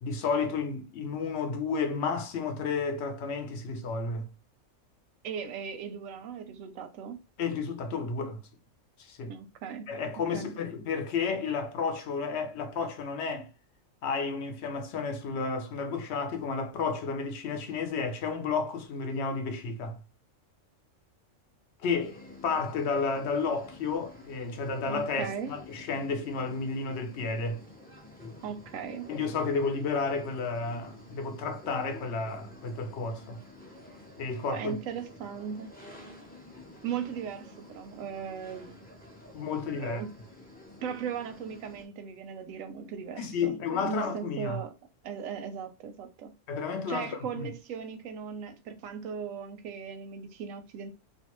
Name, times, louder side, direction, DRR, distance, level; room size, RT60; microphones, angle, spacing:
voice 1, 0.0-4.2 7.4-8.4 9.0-9.3 9.9-13.5 14.0-20.0 21.8-27.6 29.1-33.4 34.2-34.7 39.3-40.0 43.2-44.6 46.5-47.5, left 4 dB, 65° left, 0.8 m, -32 dB
voice 2, 5.2-7.2 9.3-9.9 10.3-10.5 24.9-25.5 28.4-29.1 34.5-35.7 36.8-38.8 39.7-40.1 40.8-44.7 45.0-46.3 46.9-50.9, right 7 dB, 90° right, 1.0 m, -38 dB
sound 1, 22.0-41.8, left 2 dB, 10° left, 0.4 m, -50 dB
2.5 x 2.3 x 2.9 m
omnidirectional pair, 1.3 m